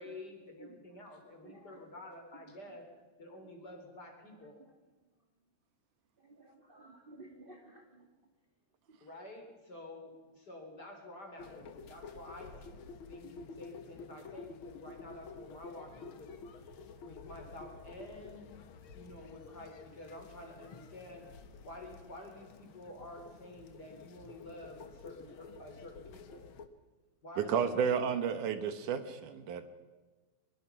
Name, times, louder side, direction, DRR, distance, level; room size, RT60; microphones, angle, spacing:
voice 1, 0.0-2.9 3.2-4.6 9.0-16.3 16.6-18.5 18.9-21.3 21.6-26.5 27.2-28.0, left 1 dB, 30° left, 3 dB, 4.1 m, -50 dB
voice 2, 1.4-1.8 6.2-8.1 8.9-9.0, right 2 dB, 20° right, 2 dB, 1.6 m, -55 dB
sound 1, 11.4-26.7, left 4 dB, 60° left, 1.4 m, -51 dB
voice 3, 27.4-29.7, right 7 dB, 75° right, 10 dB, 2.6 m, -32 dB
24.0 x 22.0 x 5.8 m, 1.3 s
omnidirectional pair, 3.8 m